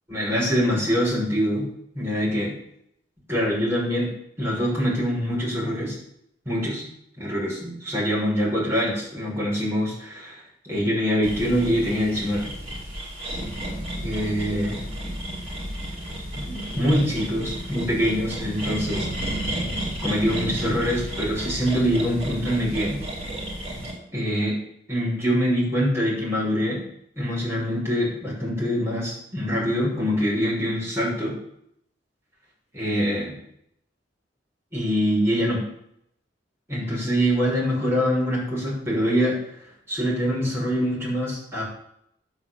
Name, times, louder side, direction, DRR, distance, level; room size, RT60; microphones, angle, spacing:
voice 1, 0.1-1.7 1.9-2.5 3.3-4.1 4.4-6.0 6.4-6.9 7.2-12.5 14.0-14.7 16.3-19.1 20.0-23.0 24.1-24.6 24.9-26.8 27.2-31.3 32.7-33.3 34.7-35.6 36.7-39.4 39.9-41.6, equal, 15° right, -5 dB, 6.4 m, -24 dB
sound 1, 11.2-23.9, right 1 dB, 35° right, 5.0 m, -32 dB
11.0 x 9.1 x 7.4 m, 0.75 s
head